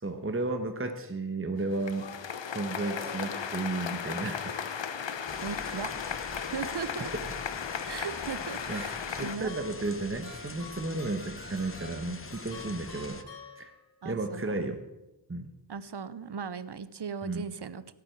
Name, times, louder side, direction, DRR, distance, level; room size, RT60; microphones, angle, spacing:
voice 1, 0.0-2.1 2.5-4.6 7.1-7.2 8.7-8.9 9.2-13.2 13.6-13.7 14.0-14.8 15.3-15.5 17.2-17.4, right 2 dB, 30° right, 6 dB, 1.2 m, -33 dB
sound 1, 1.6-9.4, left 7 dB, 85° left, 0.8 m, -36 dB
sound 2, 5.3-13.2, left 3 dB, 30° left, 0.8 m, -44 dB
voice 2, 5.4-5.9 6.3-7.1 7.8-9.5 14.0-14.5 15.7-17.9, right 6 dB, 65° right, 15 dB, 0.8 m, -38 dB
sound 3, 8.0-14.1, left 2 dB, 60° left, 5.1 m, -49 dB
17.0 x 9.0 x 4.6 m, 0.98 s
wide cardioid pair, 55°, 43 cm